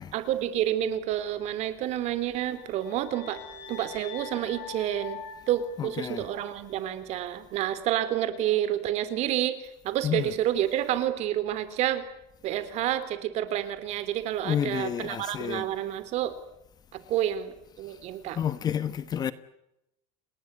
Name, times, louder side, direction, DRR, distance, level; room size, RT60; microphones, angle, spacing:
voice 1, 0.1-3.4 3.7-12.0 12.4-16.3 16.9-18.4, right 12 dB, 45° right, 3.5 m, -29 dB
sound 1, 2.4-6.6, left 6 dB, 70° left, 7.7 m, -44 dB
voice 2, 5.8-6.3 10.0-10.3 14.4-15.7 18.3-19.3, left 9 dB, 25° left, 1.1 m, -30 dB
29.0 x 20.0 x 9.6 m
cardioid pair, 160°, 15 cm